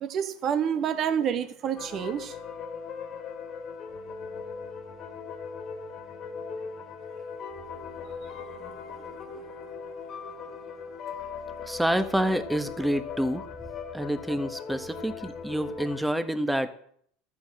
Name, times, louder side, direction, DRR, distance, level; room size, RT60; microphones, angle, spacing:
voice 1, 0.0-2.3 8.7-8.8 9.0-9.1, right 8 dB, 45° right, 8 dB, 1.6 m, -28 dB
sound 1, 1.8-16.0, left 5 dB, 45° left, 2.1 m, -39 dB
voice 2, 11.7-13.5 13.9-16.7, equal, 5° right, 9 dB, 1.4 m, -28 dB
13.0 x 7.0 x 7.7 m, 0.65 s
hypercardioid pair, 75°, 0 cm